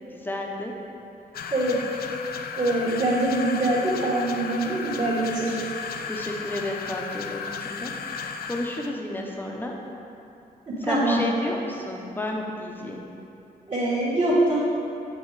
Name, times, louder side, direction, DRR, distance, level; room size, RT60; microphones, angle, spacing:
voice 1, 0.1-0.7 6.0-7.9 8.2-9.7 10.9-13.0, left 1 dB, 15° left, 0 dB, 0.7 m, -32 dB
sound 1, 1.3-9.0, left 5 dB, 80° left, 0.4 m, -35 dB
voice 2, 2.6-5.5 10.7-11.2 13.7-14.6, right 1 dB, 35° right, -10 dB, 1.4 m, -24 dB
8.5 x 4.2 x 4.7 m, 2.8 s
wide cardioid pair, 175°, 16 cm